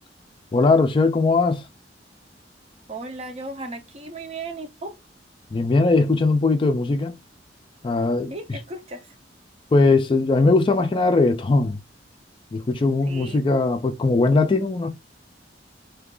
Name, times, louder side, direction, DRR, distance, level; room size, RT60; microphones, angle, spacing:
voice 1, 0.5-1.6 5.5-7.2 7.8-8.3 9.7-11.8 12.5-14.9, left 3 dB, 30° left, 0.3 m, -19 dB
voice 2, 2.9-5.0 8.3-9.1 13.1-13.4, right 2 dB, 35° right, 0.6 m, -35 dB
2.8 x 2.4 x 3.6 m
head